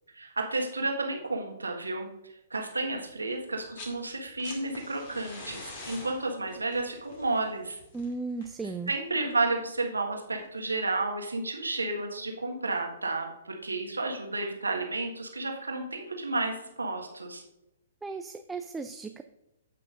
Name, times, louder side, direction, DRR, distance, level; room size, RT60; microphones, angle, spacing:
voice 1, 0.1-7.8 8.9-17.4, right 2 dB, 75° right, 2 dB, 1.4 m, -32 dB
sound 1, 3.5-4.0 4.2-9.1 10.4-10.5, left 3 dB, 40° left, 2.1 m, -46 dB
voice 2, 7.9-8.9 18.0-19.2, right 4 dB, 10° right, 7 dB, 0.3 m, -36 dB
15.0 x 5.7 x 2.5 m, 0.92 s
figure-of-eight pair, 120°, 0 cm